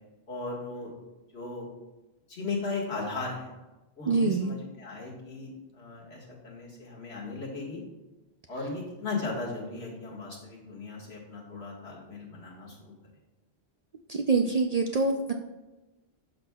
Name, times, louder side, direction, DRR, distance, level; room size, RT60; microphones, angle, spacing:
voice 1, 0.3-0.9 1.3-1.7 2.3-3.5 4.0-7.8 8.5-12.9, left 3 dB, 85° left, -3 dB, 2.1 m, -37 dB
voice 2, 4.1-4.5 14.1-15.3, right 3 dB, 50° right, 3 dB, 0.5 m, -25 dB
12.0 x 6.1 x 2.3 m, 1.1 s
omnidirectional pair, 1.0 m